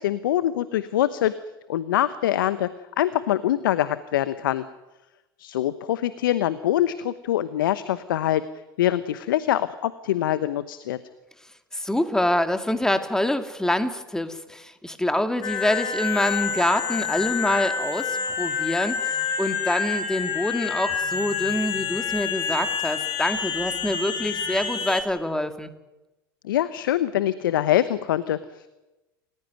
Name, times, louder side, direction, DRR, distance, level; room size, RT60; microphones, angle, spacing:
voice 1, 0.0-1.3 1.7-2.7 3.0-4.6 5.4-8.4 8.8-11.0 26.4-28.7, left 12 dB, 70° left, 14 dB, 1.0 m, -24 dB
voice 2, 11.7-25.7, left 1 dB, 5° left, 8 dB, 2.4 m, -26 dB
sound 1, 15.4-25.0, left 6 dB, 45° left, 5.3 m, -28 dB
28.5 x 16.0 x 9.3 m, 1.1 s
hypercardioid pair, 85°, 12 cm